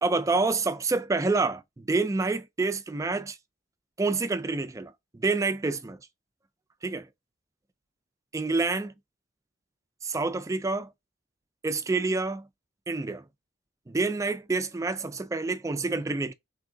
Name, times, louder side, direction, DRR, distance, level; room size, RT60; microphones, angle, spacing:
voice 1, 0.0-3.4 4.0-6.0 6.8-7.1 8.3-8.9 10.0-10.9 11.6-12.5 12.9-13.2 13.9-16.3, right 3 dB, 15° right, 0.3 m, -28 dB
3.7 x 2.9 x 3.8 m
head